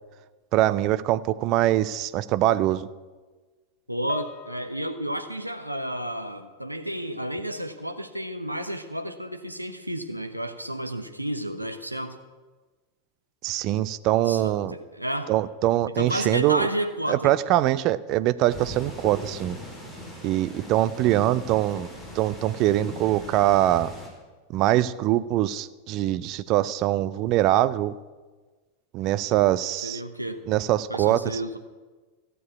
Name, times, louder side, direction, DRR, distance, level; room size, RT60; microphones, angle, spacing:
voice 1, 0.5-2.9 13.4-14.7 15.3-16.7 17.1-19.6 20.2-21.9 22.2-23.9 24.5-27.9 28.9-30.0 30.5-31.4, right 14 dB, 40° right, 16 dB, 0.5 m, -23 dB
voice 2, 3.9-12.2 14.2-15.3 16.0-17.4 29.8-30.4 30.9-31.6, equal, 90° right, 7 dB, 1.0 m, -31 dB
Piano, 4.1-6.7 7.0-7.3 8.1-8.2, left 5 dB, 40° left, 1.0 m, -47 dB
sound 1, 18.5-24.1, equal, ahead, 3.9 m, -40 dB
15.0 x 7.0 x 8.5 m, 1.3 s
figure-of-eight pair, 90°, 0 cm